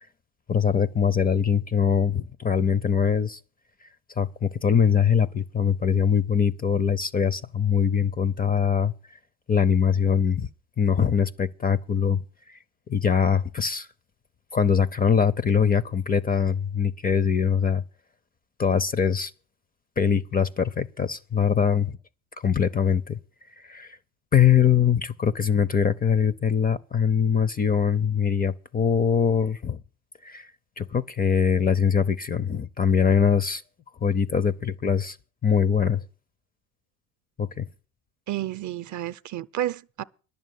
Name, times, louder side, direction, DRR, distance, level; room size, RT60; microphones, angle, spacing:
voice 1, 0.5-3.4 4.2-8.9 9.5-10.5 10.8-12.2 12.5-12.6 12.9-13.9 14.5-17.8 18.6-19.3 20.0-22.0 22.4-23.2 23.6-24.0 24.3-29.8 30.2-30.5 30.8-33.6 34.0-35.2 35.4-36.0 37.4-37.7, left 7 dB, 20° left, 0.5 m, -22 dB
voice 2, 38.3-40.0, right 13 dB, 45° right, 0.6 m, -31 dB
11.0 x 6.8 x 9.2 m
supercardioid pair, 100°, 43 cm